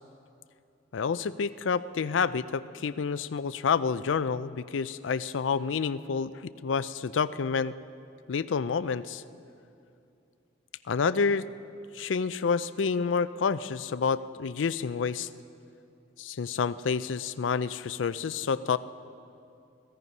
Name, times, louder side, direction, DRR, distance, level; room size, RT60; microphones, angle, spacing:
voice 1, 0.9-6.3 6.6-7.7 8.3-9.2 10.9-11.5 11.9-15.3 16.2-18.8, left 5 dB, 90° left, 15 dB, 0.4 m, -28 dB
17.0 x 15.5 x 5.4 m, 2.6 s
head